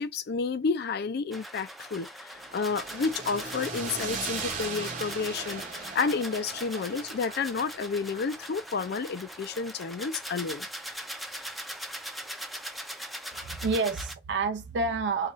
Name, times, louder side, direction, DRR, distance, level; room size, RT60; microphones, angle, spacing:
voice 1, 0.0-10.7 13.3-13.5, left 4 dB, 60° left, 0.4 m, -31 dB
sound 1, 1.3-14.1, equal, ahead, 0.4 m, -41 dB
sound 2, 2.3-10.6, right 5 dB, 45° right, 1.0 m, -40 dB
voice 2, 13.3-15.3, right 4 dB, 75° right, 0.5 m, -29 dB
4.1 x 2.3 x 2.9 m
head